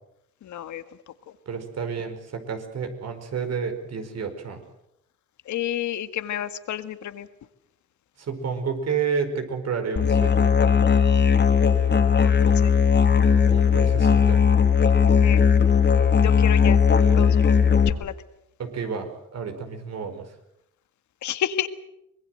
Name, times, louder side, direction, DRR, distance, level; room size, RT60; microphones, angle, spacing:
voice 1, 0.4-1.3 5.4-7.3 12.2-12.7 15.2-15.4 16.2-16.8 17.2-18.1 21.2-21.7, left 11 dB, 75° left, 11 dB, 1.8 m, -31 dB
voice 2, 1.5-4.6 8.2-10.5 13.5-14.4 18.6-20.3, right 6 dB, 60° right, 7 dB, 4.9 m, -30 dB
Musical instrument, 10.0-17.9, left 6 dB, 35° left, 2.9 m, -18 dB
25.0 x 21.0 x 7.8 m, 0.82 s
cardioid pair, 90°, 30 cm